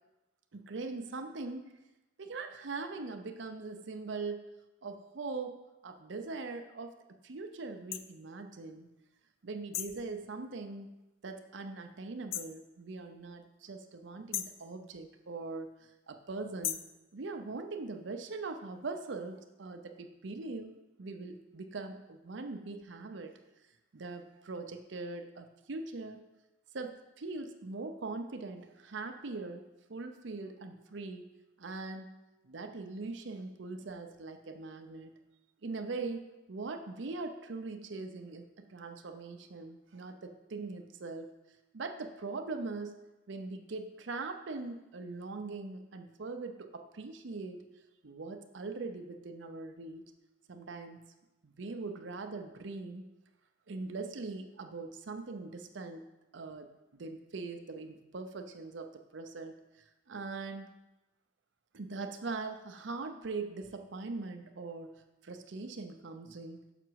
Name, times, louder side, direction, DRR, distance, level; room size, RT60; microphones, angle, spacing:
voice 1, 0.5-1.7 2.2-4.5 4.8-6.9 7.2-8.9 9.4-10.9 11.2-15.7 16.1-16.8 17.1-23.3 23.9-26.2 26.7-31.3 31.6-32.1 32.4-35.1 35.6-41.3 41.7-43.0 43.3-47.6 48.0-50.1 50.5-51.0 51.4-53.0 53.7-56.0 56.3-59.6 60.1-60.7 61.7-64.9 65.2-66.6, right 3 dB, 65° right, 6 dB, 0.6 m, -41 dB
sound 1, 7.9-8.1 9.7-10.0 12.3-12.6 14.3-14.6 16.6-16.9, left 11 dB, 90° left, 0.4 m, -36 dB
6.1 x 5.8 x 4.6 m, 1.0 s
head